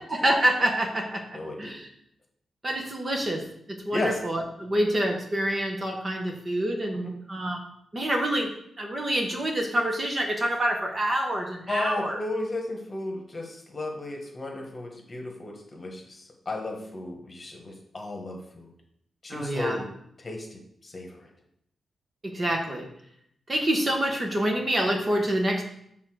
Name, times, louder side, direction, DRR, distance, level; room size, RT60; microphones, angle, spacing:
voice 1, 0.1-1.9 2.6-12.2 19.3-19.8 22.2-22.9 23.5-25.6, right 1 dB, 30° right, 2 dB, 1.1 m, -27 dB
voice 2, 1.3-1.7 3.9-4.2 11.7-18.7 19.2-19.9 20.2-21.2, left 2 dB, 30° left, 1 dB, 1.5 m, -34 dB
7.2 x 3.8 x 6.2 m, 0.72 s
wide cardioid pair, 130°, 0 cm